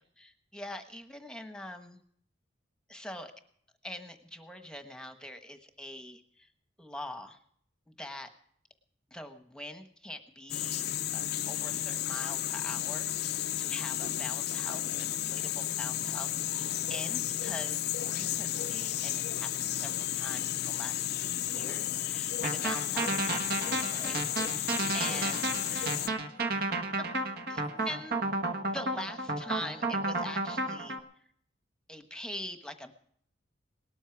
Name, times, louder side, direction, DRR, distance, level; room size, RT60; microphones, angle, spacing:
voice 1, 0.0-2.0 2.9-3.3 3.8-6.5 6.8-7.4 8.0-8.3 9.1-24.2 24.5-25.4 25.7-25.9 27.5-28.2 28.7-31.0 31.9-32.9, left 1 dB, 5° left, 7 dB, 1.2 m, -44 dB
sound 1, 10.5-26.1, left 12 dB, 55° left, 0.5 m, -33 dB
voice 2, 15.3-15.8 25.1-25.9 26.2-28.2, equal, 75° right, 3 dB, 4.8 m, -59 dB
sound 2, 22.4-31.0, right 2 dB, 50° right, 1.4 m, -32 dB
18.5 x 13.0 x 4.7 m, 0.63 s
head